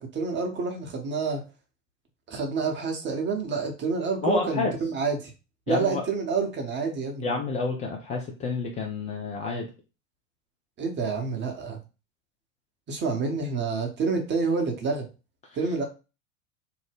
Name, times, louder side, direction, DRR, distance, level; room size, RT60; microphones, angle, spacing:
voice 1, 0.0-1.4 2.3-5.3 5.7-7.3 10.8-11.8 12.9-15.1 15.5-15.8, right 4 dB, 25° right, 3 dB, 0.8 m, -28 dB
voice 2, 4.2-4.7 5.7-6.1 7.2-9.7, left 3 dB, 20° left, 1 dB, 0.3 m, -29 dB
2.7 x 2.1 x 3.4 m, 0.31 s
figure-of-eight pair, 80°, 40 cm